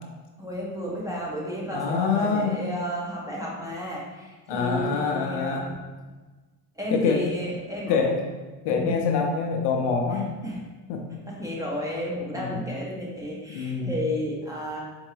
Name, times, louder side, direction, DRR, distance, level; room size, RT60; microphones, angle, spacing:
voice 1, 0.4-5.7 6.8-8.1 8.7-9.0 10.1-10.6 11.3-14.8, equal, 5° right, -4 dB, 1.1 m, -32 dB
voice 2, 1.7-2.6 4.5-5.7 6.9-7.3 7.9-8.3 8.6-10.3 10.9-11.0 12.3-12.6 13.5-13.9, left 5 dB, 65° left, 2 dB, 0.8 m, -25 dB
4.4 x 3.5 x 3.3 m, 1.3 s
supercardioid pair, 85°, 46 cm